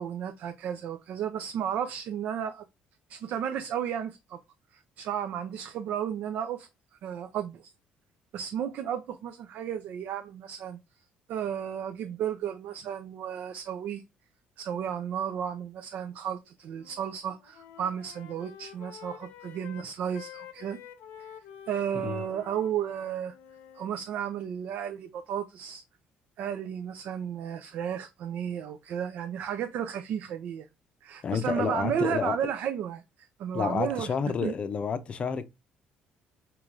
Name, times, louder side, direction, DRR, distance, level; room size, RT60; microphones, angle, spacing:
voice 1, 0.0-2.6 3.1-4.4 4.7-7.7 8.3-11.0 11.3-14.0 14.6-20.8 21.2-21.3 21.7-23.3 23.7-25.8 26.4-30.7 31.0-34.1 34.4-34.5, right 9 dB, 65° right, 0.5 m, -33 dB
Wind instrument woodwind instrument, 16.7-17.1 17.4-23.9, left 9 dB, 85° left, 0.7 m, -49 dB
voice 2, 31.2-32.5 33.5-35.5, left 6 dB, 35° left, 0.5 m, -30 dB
4.7 x 3.1 x 2.4 m
cardioid pair, 130°, 3 cm